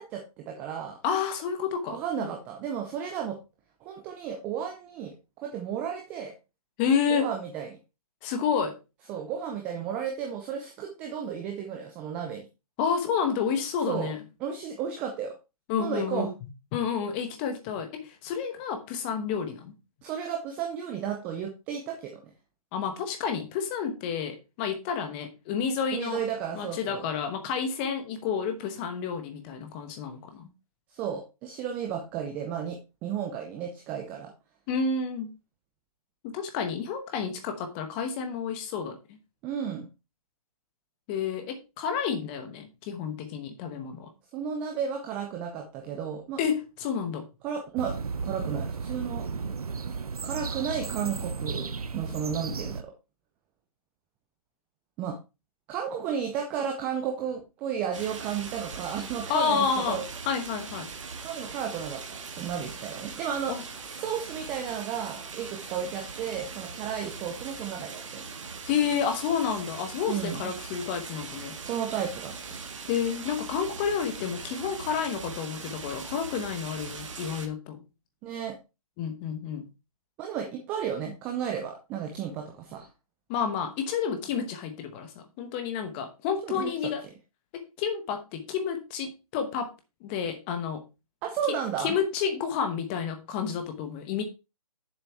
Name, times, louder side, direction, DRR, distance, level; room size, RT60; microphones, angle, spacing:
voice 1, 0.0-1.0 1.9-3.4 3.8-5.1 5.4-6.3 7.1-7.7 9.1-12.5 13.9-14.1 14.4-15.3 15.8-16.3 20.0-22.2 25.9-27.1 30.9-34.3 39.4-39.9 44.3-46.4 47.4-47.9 48.2-49.3 50.2-51.7 51.9-52.8 55.0-55.2 55.7-60.0 61.2-63.5 63.9-68.2 70.1-70.4 71.6-72.3 78.2-78.6 80.2-82.9 86.4-86.7 91.2-91.9, right 8 dB, 5° right, 2 dB, 0.5 m, -33 dB
voice 2, 1.0-2.3 6.8-7.3 8.2-8.8 12.8-14.2 15.7-16.3 16.7-19.7 22.7-26.2 26.5-30.5 34.7-35.4 36.2-39.0 41.1-44.1 46.4-47.3 59.3-60.9 63.5-63.6 68.7-71.6 72.9-77.8 79.0-79.7 83.3-87.0 87.5-89.7 90.0-90.8 91.5-94.2, left 6 dB, 15° left, 7 dB, 1.1 m, -30 dB
sound 1, 47.8-52.8, right 5 dB, 75° right, 0.9 m, -34 dB
sound 2, 57.9-77.5, right 5 dB, 55° right, 1.7 m, -40 dB
7.3 x 6.6 x 4.5 m, 0.27 s
hypercardioid pair, 160°, 19 cm